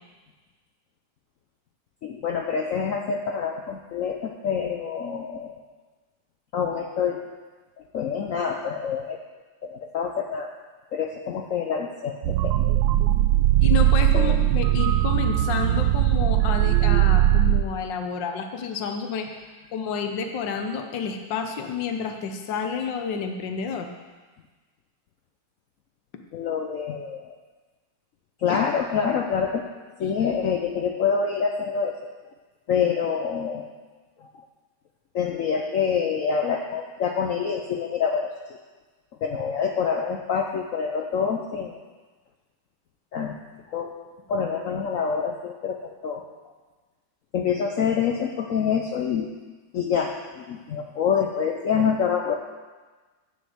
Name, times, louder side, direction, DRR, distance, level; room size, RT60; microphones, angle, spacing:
voice 1, 2.0-5.6 6.5-7.2 7.9-9.2 9.6-10.5 10.9-12.6 14.1-14.4 26.3-27.3 28.4-29.6 30.0-32.0 32.7-33.7 35.1-38.3 39.2-41.8 43.1-43.4 43.7-43.9 44.3-46.2 47.3-49.3 49.7-52.4, left 6 dB, 60° left, 2 dB, 0.9 m, -26 dB
sound 1, 12.2-17.6, right 13 dB, 85° right, 1.3 m, -20 dB
voice 2, 13.6-19.3 19.7-23.9 28.5-28.6 29.0-29.1, left 6 dB, 80° left, 5 dB, 1.6 m, -30 dB
9.9 x 5.2 x 7.9 m, 1.3 s
omnidirectional pair, 2.0 m